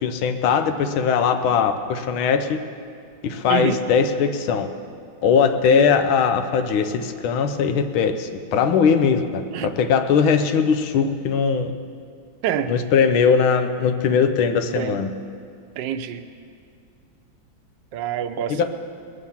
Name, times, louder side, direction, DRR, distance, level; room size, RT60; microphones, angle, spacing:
voice 1, 0.0-2.6 3.2-4.7 5.2-11.7 12.7-15.1 18.5-18.6, left 6 dB, 85° left, 7 dB, 1.6 m, -20 dB
voice 2, 3.5-3.8 5.7-5.9 9.5-9.7 12.4-12.7 14.7-15.0 15.8-16.2 17.9-18.6, right 9 dB, 70° right, 9 dB, 1.3 m, -26 dB
21.0 x 7.1 x 7.1 m, 2.3 s
omnidirectional pair, 2.2 m